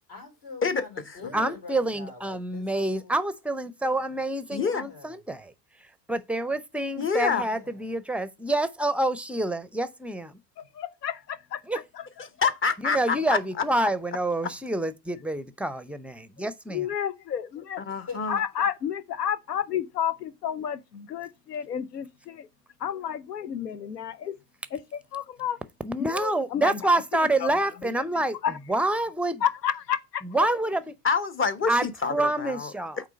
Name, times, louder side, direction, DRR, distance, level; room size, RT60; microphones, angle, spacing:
voice 1, 0.1-3.2 4.5-5.2 7.3-7.9 13.1-13.7 14.4-14.5 17.9-18.3, left 4 dB, 55° left, 3.9 m, -44 dB
voice 2, 1.3-5.5 6.1-10.4 11.7-11.8 12.8-16.9 25.8-28.4 28.7-29.4 30.2-30.8 31.7-33.0, right 2 dB, 5° right, 0.5 m, -27 dB
voice 3, 4.5-4.8 7.0-7.5 12.2-13.4 17.9-18.4 31.0-32.7, left 5 dB, 25° left, 0.9 m, -26 dB
voice 4, 10.6-12.3 16.7-17.8 18.3-22.5 22.8-24.4 24.7-25.6 26.0-27.5 28.4-28.6 29.4-30.2, left 9 dB, 90° left, 0.8 m, -31 dB
8.2 x 3.2 x 5.0 m
hypercardioid pair, 75°, 47 cm